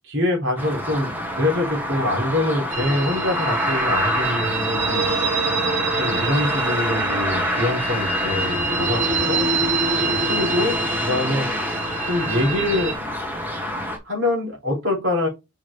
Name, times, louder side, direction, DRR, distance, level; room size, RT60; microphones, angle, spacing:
voice 1, 0.0-5.1 6.0-9.5 10.0-10.8 11.0-11.5 12.1-12.9 14.0-15.3, left 1 dB, 55° right, 3.5 m, -24 dB
sound 1, 0.6-14.0, equal, 10° right, 1.2 m, -26 dB
sound 2, 2.7-12.9, right 3 dB, 30° right, 1.2 m, -26 dB
5.8 x 5.1 x 3.4 m
head